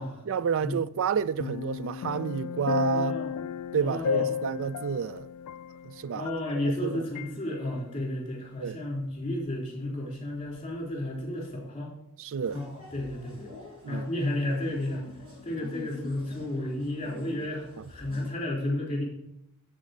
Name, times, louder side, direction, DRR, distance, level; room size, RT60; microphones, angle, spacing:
voice 1, 0.3-3.2 3.7-5.3 5.8-6.3 6.6-7.0 8.6-8.8 12.2-12.6 13.8-14.1, right 7 dB, 60° right, 0.3 m, -30 dB
sound 1, 1.4-6.8 7.2-7.3, left 8 dB, 90° left, 0.3 m, -33 dB
voice 2, 2.9-3.3 3.8-4.4 6.1-11.9 12.5-13.5 13.9-15.0 15.4-19.0, left 1 dB, 25° left, 3.7 m, -32 dB
sound 2, 12.4-18.3, left 3 dB, 25° right, 3.8 m, -47 dB
11.5 x 4.3 x 6.6 m
head